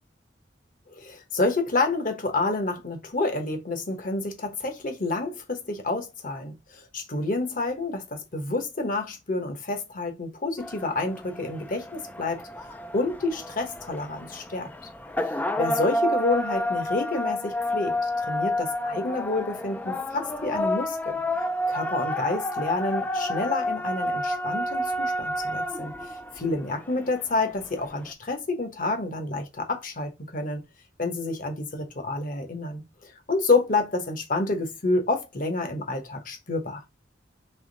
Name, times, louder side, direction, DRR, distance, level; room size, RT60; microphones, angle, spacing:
voice 1, 0.9-12.4 12.9-14.7 15.6-21.2 21.7-30.6 31.0-36.8, left 3 dB, 45° left, 1.0 m, -29 dB
sound 1, 10.6-28.1, left 1 dB, 10° left, 0.3 m, -30 dB
3.5 x 3.0 x 3.9 m
head